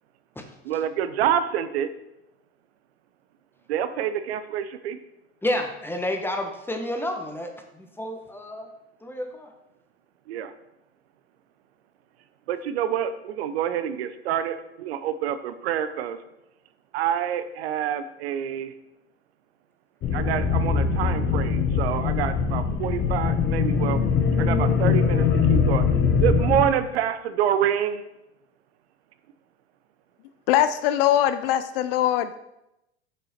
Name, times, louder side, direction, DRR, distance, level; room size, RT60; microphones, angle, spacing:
voice 1, 0.7-1.9 3.7-5.0 10.3-10.5 12.5-16.2 16.9-18.7 20.1-24.0 24.4-25.8 26.2-28.0, right 9 dB, 65° right, 11 dB, 0.7 m, -27 dB
voice 2, 5.4-8.7 9.0-9.5, left 1 dB, 5° left, 4 dB, 1.2 m, -30 dB
sound 1, 20.0-26.7, left 5 dB, 30° left, 1.0 m, -22 dB
voice 3, 30.5-32.3, left 12 dB, 55° left, 13 dB, 0.5 m, -21 dB
6.8 x 6.2 x 4.3 m, 0.88 s
figure-of-eight pair, 80°, 34 cm